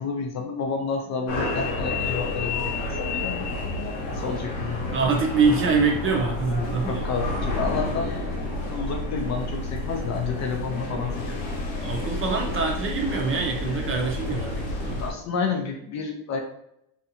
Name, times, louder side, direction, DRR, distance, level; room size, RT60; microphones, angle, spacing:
voice 1, 0.0-3.5 4.1-5.0 6.9-8.2 8.6-11.4 15.0-16.4, left 5 dB, 40° left, 3 dB, 0.4 m, -30 dB
sound 1, 1.3-15.1, left 2 dB, 85° left, 0.9 m, -30 dB
voice 2, 4.9-7.1 11.7-15.0, right 4 dB, 30° right, 1 dB, 0.5 m, -25 dB
2.6 x 2.4 x 2.6 m, 0.77 s
cardioid pair, 110°, 43 cm